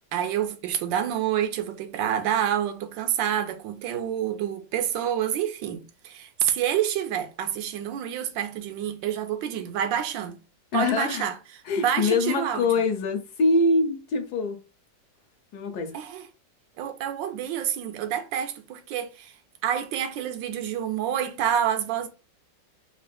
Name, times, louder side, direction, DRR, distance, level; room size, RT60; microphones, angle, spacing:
voice 1, 0.1-10.4 10.7-11.4 11.8-12.7 15.9-16.3 16.8-19.3 19.6-22.1, right 10 dB, 85° right, 1.3 m, -28 dB
voice 2, 10.7-11.2 11.7-14.6 15.5-15.9, left 3 dB, 70° left, 1.1 m, -24 dB
3.6 x 2.4 x 3.3 m
omnidirectional pair, 2.0 m